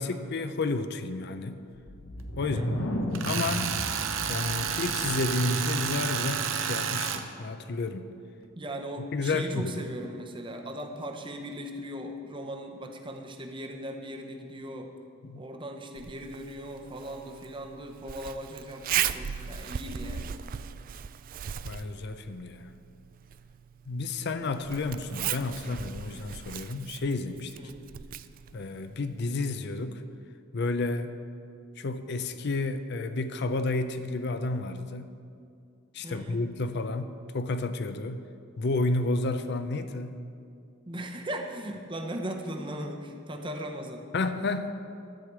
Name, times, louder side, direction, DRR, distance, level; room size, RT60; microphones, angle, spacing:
voice 1, 0.0-1.6 2.4-3.0 3.2-3.8 4.3-8.1 9.1-9.8 15.2-15.4 19.2-19.3 21.6-22.7 23.9-27.6 28.5-30.0 30.5-31.1 31.8-35.1 35.9-38.2 38.6-40.2 44.1-44.7, left 3 dB, 55° left, 10 dB, 0.5 m, -31 dB
sound 1, 1.7-5.6, left 1 dB, 85° left, 0.9 m, -34 dB
voice 2, 2.4-2.7 8.6-14.9 15.3-20.3 27.6-27.7 36.0-36.4 40.9-44.1, right 1 dB, 25° right, 3 dB, 0.8 m, -38 dB
Tools, 3.2-7.2, right 7 dB, 80° right, 0.7 m, -30 dB
Zipper (clothing), 16.0-29.5, right 9 dB, 45° right, 0.3 m, -38 dB
13.0 x 5.0 x 8.0 m, 2.4 s
head